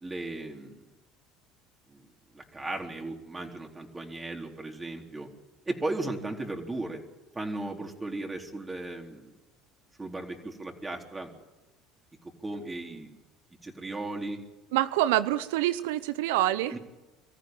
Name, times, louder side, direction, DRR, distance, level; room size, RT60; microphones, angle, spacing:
voice 1, 0.0-0.9 1.9-2.0 2.3-5.3 5.7-7.0 7.3-9.3 10.0-11.3 12.2-13.1 13.6-14.4 16.7-16.8, right 2 dB, 20° right, 2 dB, 4.0 m, -36 dB
voice 2, 14.7-16.7, right 14 dB, 80° right, 14 dB, 0.8 m, -26 dB
23.5 x 14.5 x 9.3 m, 1.1 s
hypercardioid pair, 75°, 0 cm